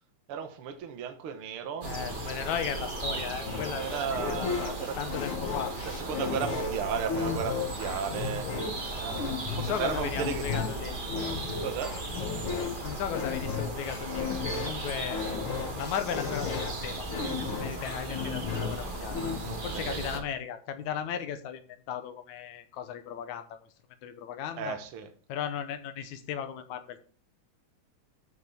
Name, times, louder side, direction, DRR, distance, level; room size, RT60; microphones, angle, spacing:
voice 1, 0.3-1.9 3.8-5.0 5.8-8.5 8.9-10.6 11.4-12.0 19.4-20.2 24.6-25.1, right 7 dB, 55° right, 6 dB, 1.8 m, -35 dB
voice 2, 1.8-5.7 9.5-11.0 12.8-15.2 15.8-17.1 17.6-19.2 19.6-21.6 21.9-23.6 24.0-24.8 25.3-27.0, left 9 dB, 75° left, 9 dB, 2.2 m, -36 dB
sound 1, 1.8-20.2, right 2 dB, 75° right, 0.4 m, -37 dB
sound 2, 3.4-19.6, left 5 dB, 55° left, 1.8 m, -35 dB
13.5 x 6.6 x 3.5 m, 0.41 s
omnidirectional pair, 3.4 m